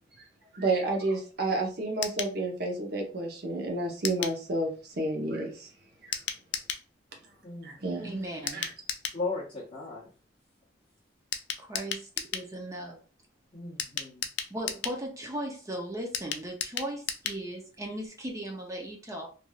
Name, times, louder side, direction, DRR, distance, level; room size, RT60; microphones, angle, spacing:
voice 1, 0.5-5.7 7.6-8.2 8.5-8.7, right 2 dB, 60° right, 0.8 m, -30 dB
sound 1, 2.0-2.4 4.0-4.4 6.1-6.9 8.5-9.2 11.3-12.5 13.8-15.0 16.1-17.4 17.7-17.8 18.1-18.2, left 8 dB, 75° left, 0.4 m, -34 dB
voice 2, 7.4-7.7 9.1-10.1 13.5-14.3, left 3 dB, 30° left, 0.9 m, -36 dB
voice 3, 8.0-8.7 11.6-13.0 14.5-19.3, right 1 dB, 20° right, 0.5 m, -37 dB
3.2 x 2.6 x 2.3 m
head